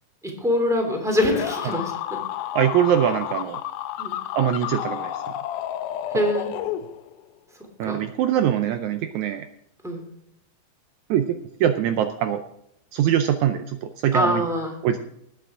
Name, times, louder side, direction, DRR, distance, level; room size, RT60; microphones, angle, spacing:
voice 1, 0.2-2.2 4.0-4.1 6.1-6.5 7.8-8.0 9.8-10.0 14.1-14.7, left 1 dB, ahead, 2 dB, 2.4 m, -24 dB
sound 1, 1.2-7.2, left 12 dB, 80° left, 2.0 m, -31 dB
voice 2, 2.5-3.6 4.3-5.1 7.8-9.5 11.1-11.3 11.6-12.4 12.9-14.4 14.8-15.0, right 10 dB, 85° right, 8 dB, 1.7 m, -22 dB
20.0 x 8.4 x 3.7 m, 0.76 s
omnidirectional pair, 4.2 m